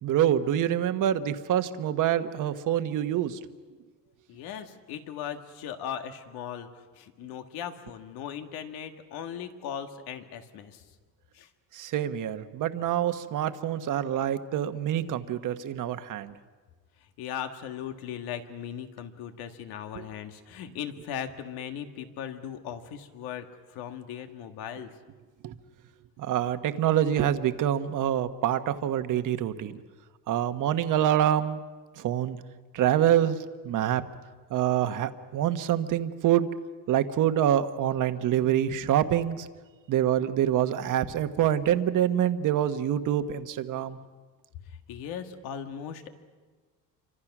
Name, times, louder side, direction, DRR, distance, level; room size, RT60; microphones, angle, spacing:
voice 1, 0.0-3.4 11.7-16.3 20.0-20.1 25.4-25.5 26.2-29.8 30.3-31.6 32.0-32.4 32.7-33.4 33.6-34.0 34.5-36.5 36.9-39.5 39.9-44.0, right 10 dB, 55° right, 9 dB, 1.3 m, -26 dB
voice 2, 4.3-10.8 11.3-11.5 17.2-24.9 44.9-46.1, left 8 dB, 90° left, 6 dB, 1.9 m, -38 dB
28.5 x 25.5 x 6.1 m, 1.4 s
cardioid pair, 145°, 37 cm